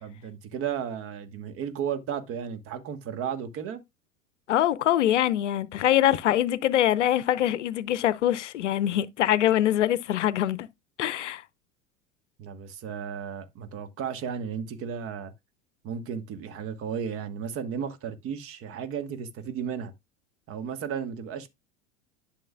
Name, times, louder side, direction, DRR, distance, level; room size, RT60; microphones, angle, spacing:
voice 1, 0.0-3.8 12.4-15.3 15.8-19.9 20.5-21.5, right 7 dB, 35° right, 1.2 m, -34 dB
voice 2, 4.5-10.7 11.0-11.4, left 12 dB, 65° left, 0.6 m, -24 dB
11.0 x 6.4 x 2.3 m
figure-of-eight pair, 80°, 39 cm